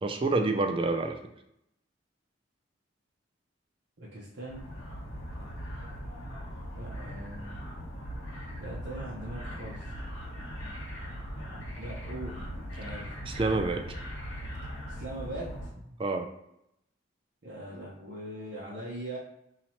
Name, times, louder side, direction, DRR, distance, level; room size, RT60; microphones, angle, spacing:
voice 1, 0.0-1.2 13.3-13.8 16.0-16.3, right 3 dB, 25° right, 5 dB, 0.3 m, -27 dB
voice 2, 4.0-4.6 6.7-7.6 8.6-9.9 11.8-12.4 12.7-13.1 15.0-15.7 17.4-19.2, right 1 dB, 60° right, -5 dB, 0.7 m, -40 dB
sound 1, 4.5-15.7, equal, 90° left, 1.4 m, -40 dB
2.8 x 2.8 x 4.3 m, 0.81 s
head